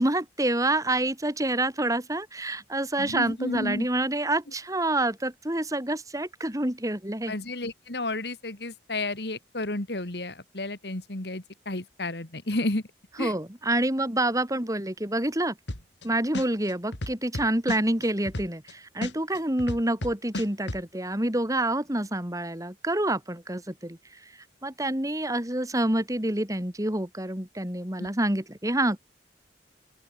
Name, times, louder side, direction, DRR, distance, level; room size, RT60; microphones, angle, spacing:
voice 1, 0.0-7.3 13.1-15.6 16.0-24.0 24.6-29.0, right 1 dB, 20° right, 2.9 m, -27 dB
voice 2, 3.0-3.9 7.3-12.8 13.2-13.3 28.0-28.1, left 2 dB, 65° left, 2.5 m, -32 dB
sound 1, 15.7-16.0 16.3-18.7 19.0-20.8, left 1 dB, 85° left, 2.9 m, -33 dB
open air
head